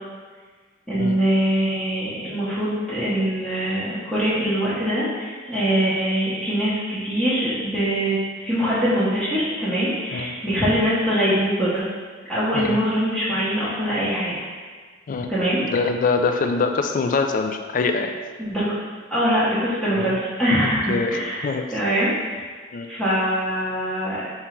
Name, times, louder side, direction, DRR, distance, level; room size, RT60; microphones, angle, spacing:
voice 1, 0.9-11.9 12.3-14.4 15.3-15.6 18.4-18.6 19.1-22.1 22.9-24.3, equal, 5° left, -11 dB, 0.8 m, -23 dB
voice 2, 15.7-18.1 20.0-20.1 20.6-21.7 22.7-22.9, left 4 dB, 45° left, 5 dB, 0.3 m, -24 dB
3.6 x 2.9 x 4.4 m, 1.5 s
head